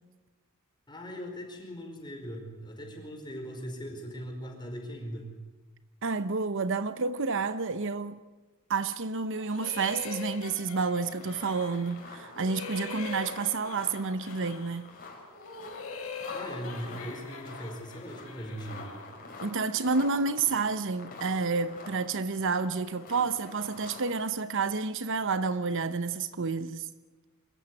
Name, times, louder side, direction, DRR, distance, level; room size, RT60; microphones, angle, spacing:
voice 1, 0.9-5.4 16.3-18.9, equal, 20° left, 4.9 m, -40 dB
voice 2, 6.0-8.2 8.7-14.9 19.4-26.9, right 4 dB, 60° right, 0.9 m, -30 dB
sound 1, 9.3-12.0 12.3-14.9 15.3-19.1, left 4 dB, 75° left, 3.9 m, -43 dB
sound 2, 10.9-24.2, left 3 dB, 40° left, 5.0 m, -47 dB
25.5 x 14.5 x 9.7 m
head